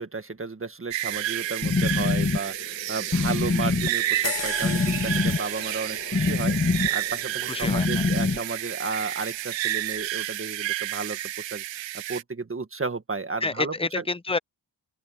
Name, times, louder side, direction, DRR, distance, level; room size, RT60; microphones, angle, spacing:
voice 1, 0.0-14.1, right 4 dB, 30° right, 1.8 m, -33 dB
sound 1, 0.9-12.2, right 13 dB, 75° right, 0.6 m, -30 dB
sound 2, 1.0-8.4, left 4 dB, 30° left, 2.0 m, -26 dB
sound 3, 4.2-9.2 9.6-9.8, left 8 dB, 70° left, 1.7 m, -39 dB
voice 2, 7.5-7.9 13.4-14.4, left 3 dB, 10° left, 0.7 m, -28 dB
open air
wide cardioid pair, 115°, 45 cm